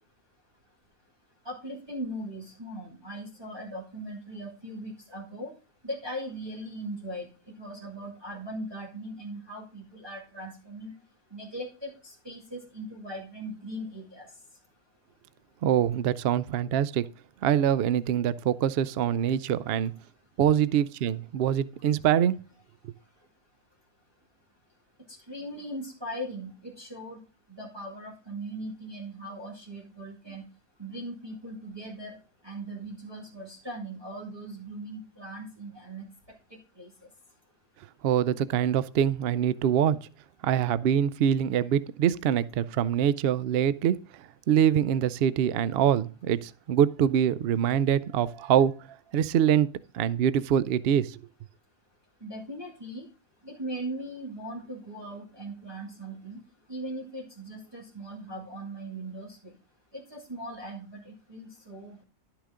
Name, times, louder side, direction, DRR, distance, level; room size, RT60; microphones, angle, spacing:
voice 1, 1.4-5.5 5.8-7.3 7.6-10.9 11.3-14.3 25.1-27.2 27.5-30.5 30.8-32.2 32.4-36.0 36.8-36.9 52.2-53.1 53.4-56.4 56.7-59.5 59.9-62.0, right 1 dB, 15° right, 2.2 m, -39 dB
voice 2, 15.6-17.1 17.4-19.9 20.4-22.4 38.0-40.1 40.4-48.9 49.1-51.2, right 9 dB, 75° right, 0.5 m, -24 dB
11.5 x 5.9 x 3.7 m
omnidirectional pair, 1.6 m